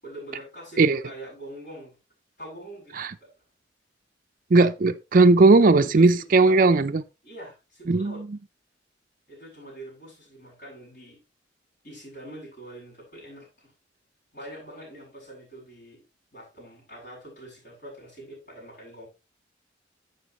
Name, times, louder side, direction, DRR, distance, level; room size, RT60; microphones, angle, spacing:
voice 1, 0.0-2.0 2.4-3.3 5.6-6.6 7.2-8.2 9.3-11.2 11.8-13.7 14.3-16.0 16.3-19.1, right 1 dB, 50° left, 7.4 m, -43 dB
voice 2, 4.5-7.0 7.9-8.4, right 3 dB, 45° right, 0.5 m, -18 dB
11.5 x 8.3 x 2.9 m
head